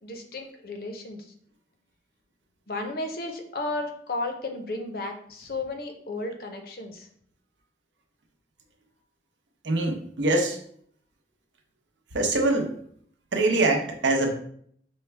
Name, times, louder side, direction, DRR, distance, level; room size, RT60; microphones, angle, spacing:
voice 1, 0.0-1.3 2.7-7.1, left 2 dB, 55° left, 4 dB, 0.6 m, -34 dB
voice 2, 9.6-10.6 12.1-12.7 13.3-14.3, right 2 dB, 80° right, 3 dB, 0.7 m, -23 dB
5.4 x 2.1 x 3.3 m, 0.63 s
head